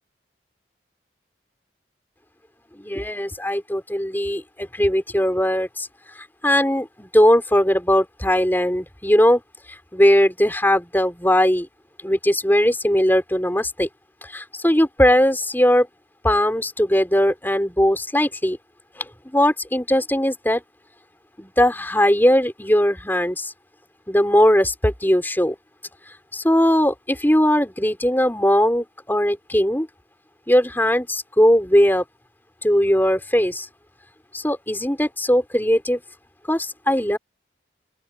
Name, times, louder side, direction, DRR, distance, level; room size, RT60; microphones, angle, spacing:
voice 1, 2.8-5.9 6.4-9.4 9.9-11.7 12.0-13.9 14.3-15.9 16.2-18.6 19.3-20.6 21.4-23.5 24.1-25.5 26.3-29.9 30.5-32.0 32.6-33.7 34.3-36.0 36.5-37.2, equal, 10° left, 4.6 m, -19 dB
open air
head